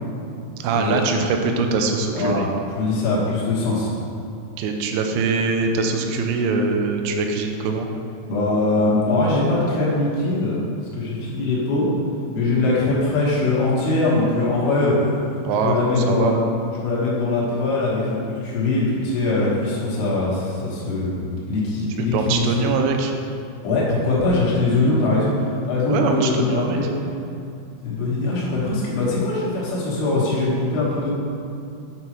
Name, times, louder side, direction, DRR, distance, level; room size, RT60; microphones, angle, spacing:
voice 1, 0.6-2.5 4.6-7.9 15.4-15.8 16.1-16.3 22.0-23.1 25.9-26.8, right 4 dB, 85° right, 3 dB, 3.2 m, -22 dB
voice 2, 2.1-2.4 2.7-3.9 8.3-10.6 10.9-11.9 12.3-14.9 15.6-16.4 16.8-21.2 21.5-22.4 23.6-25.4 25.6-26.9 27.8-31.1, left 2 dB, 65° left, -6 dB, 2.9 m, -21 dB
8.7 x 5.4 x 3.0 m, 2.5 s
omnidirectional pair, 5.9 m